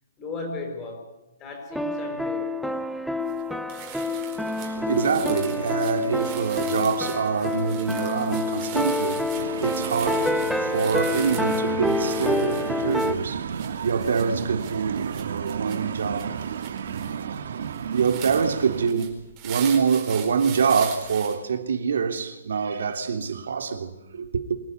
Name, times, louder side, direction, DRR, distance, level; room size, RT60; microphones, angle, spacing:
voice 1, 0.2-1.1 1.4-2.6, left 3 dB, 15° left, 5.2 m, -35 dB
sound 1, 1.7-13.1, left 2 dB, ahead, 0.9 m, -28 dB
sound 2, 3.3-3.4 3.7-21.4, right 9 dB, 20° right, 4.6 m, -41 dB
voice 2, 4.3-16.5 17.9-24.6, right 6 dB, 75° right, 3.3 m, -25 dB
sound 3, 9.3-18.9, right 7 dB, 60° right, 1.9 m, -33 dB
26.0 x 18.0 x 9.7 m
hypercardioid pair, 170°, 0 cm